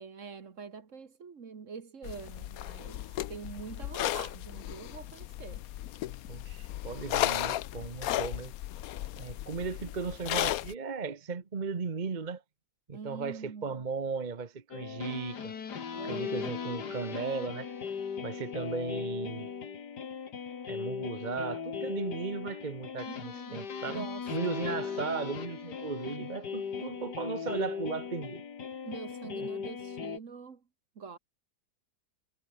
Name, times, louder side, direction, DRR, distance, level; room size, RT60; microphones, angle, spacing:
voice 1, 0.0-5.7 12.9-13.7 15.9-16.5 23.1-24.6 28.8-30.6 31.0-31.2, right 5 dB, 50° right, 1.8 m, -45 dB
sound 1, 2.0-10.7, left 13 dB, 70° left, 1.0 m, -35 dB
voice 2, 6.3-8.5 9.1-12.4 12.9-15.5 16.0-17.7 18.2-19.5 20.7-28.4 29.4-29.5, right 5 dB, 30° right, 1.2 m, -36 dB
sound 2, 14.7-30.2, left 6 dB, 85° left, 2.4 m, -38 dB
omnidirectional pair, 1.7 m